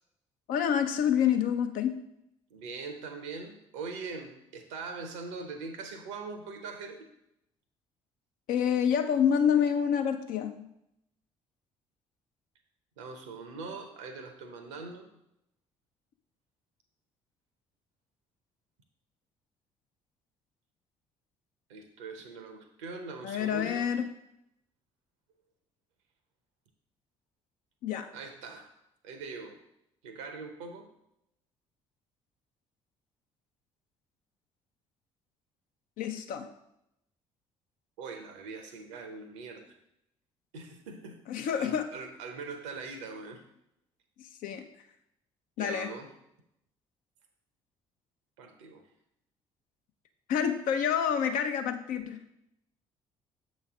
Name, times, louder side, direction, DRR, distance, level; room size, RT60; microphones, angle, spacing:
voice 1, 0.5-2.0 8.5-10.7 23.2-24.1 27.8-28.1 36.0-36.5 41.3-41.9 44.4-44.6 45.6-45.9 50.3-52.2, left 8 dB, 60° left, 7 dB, 0.6 m, -27 dB
voice 2, 2.5-7.0 13.0-15.1 21.7-23.9 28.1-28.7 29.0-29.6 30.0-30.9 38.0-39.7 40.5-41.2 41.6-43.4 45.6-46.1 48.4-48.8, right 4 dB, 75° right, 6 dB, 0.8 m, -42 dB
7.0 x 3.2 x 4.8 m, 0.81 s
figure-of-eight pair, 45°, 16 cm